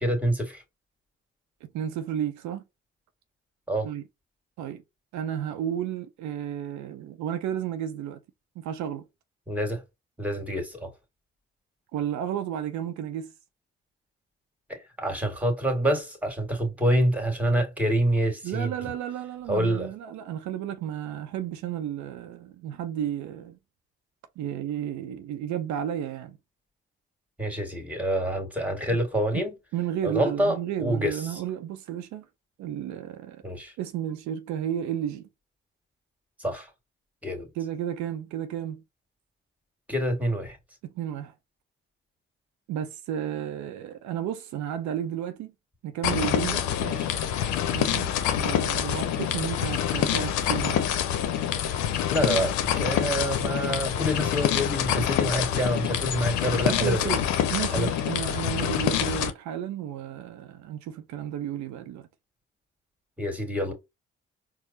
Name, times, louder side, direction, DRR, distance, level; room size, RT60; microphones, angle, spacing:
voice 1, 0.0-0.6 3.7-3.9 9.5-9.8 10.2-10.9 14.7-18.9 19.5-19.9 27.4-29.5 30.0-31.4 33.4-33.7 36.4-36.7 37.2-37.5 39.9-40.6 46.8-47.1 52.1-57.0 57.7-57.9 63.2-63.7, right 1 dB, 5° right, 1.7 m, -27 dB
voice 2, 1.6-2.6 3.8-4.0 4.6-4.8 5.1-8.2 8.6-9.1 11.9-13.3 18.4-23.6 24.4-26.4 28.9-29.0 29.3-29.5 29.7-32.3 32.6-33.4 33.8-35.3 37.6-38.8 40.8-41.3 42.7-45.5 45.8-46.6 47.7-48.1 48.4-50.9 56.7-57.2 57.5-62.1, right 10 dB, 75° right, 0.5 m, -32 dB
sound 1, 46.0-59.3, left 10 dB, 80° left, 0.6 m, -26 dB
4.4 x 2.0 x 2.6 m
hypercardioid pair, 50°, 29 cm